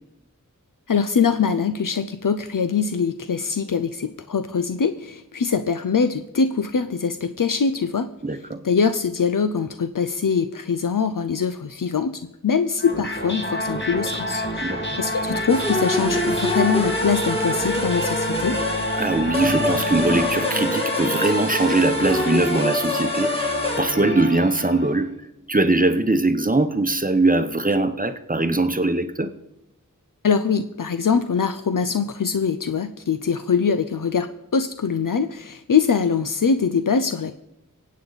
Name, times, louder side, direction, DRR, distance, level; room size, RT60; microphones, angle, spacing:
voice 1, 0.9-8.1 8.6-18.6 30.2-37.4, left 6 dB, 75° left, 10 dB, 0.6 m, -23 dB
voice 2, 8.2-8.6 14.6-15.0 19.0-25.1 25.5-29.3, right 2 dB, 25° right, 9 dB, 0.9 m, -21 dB
sound 1, 12.8-25.0, equal, 35° left, 1.8 m, -28 dB
sound 2, 15.5-23.8, left 1 dB, 15° left, 1.9 m, -26 dB
23.5 x 8.6 x 4.0 m, 0.88 s
wide cardioid pair, 45°, 33 cm